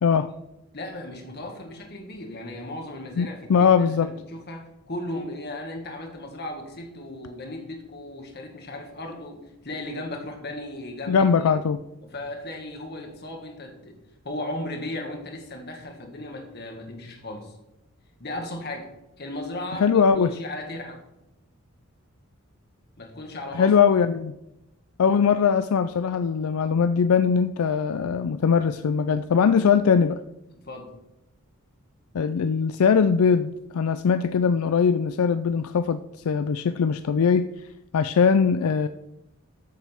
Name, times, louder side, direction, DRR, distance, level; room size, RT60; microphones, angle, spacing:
voice 1, 0.0-0.3 3.2-4.1 11.1-11.8 19.8-20.3 23.5-24.3 25.0-30.2 32.1-37.5 37.9-38.9, left 6 dB, 75° left, 11 dB, 0.4 m, -21 dB
voice 2, 0.7-11.4 12.0-14.0 14.2-17.5 18.2-18.9 19.2-21.0 23.0-23.7 30.6-30.9, left 1 dB, 50° left, 2 dB, 1.9 m, -36 dB
13.5 x 7.3 x 3.6 m, 0.91 s
head